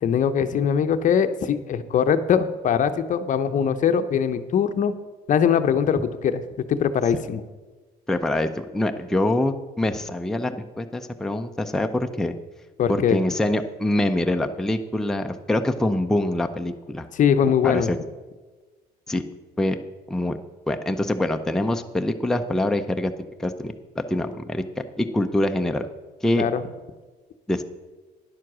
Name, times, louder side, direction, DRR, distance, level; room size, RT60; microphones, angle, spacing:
voice 1, 0.0-4.9 5.3-6.4 6.7-7.4 12.8-13.2 17.1-17.9 26.4-26.6, left 7 dB, 50° left, 10 dB, 0.7 m, -21 dB
voice 2, 8.1-12.3 12.9-17.1 17.6-18.0 19.1-19.2 19.6-19.8 20.1-20.4 20.7-23.1 23.4-24.6 25.0-25.9 26.2-26.4 27.5-27.6, left 1 dB, 5° left, 5 dB, 0.6 m, -24 dB
10.0 x 7.5 x 6.1 m, 1.3 s
cardioid pair, 110°, 17 cm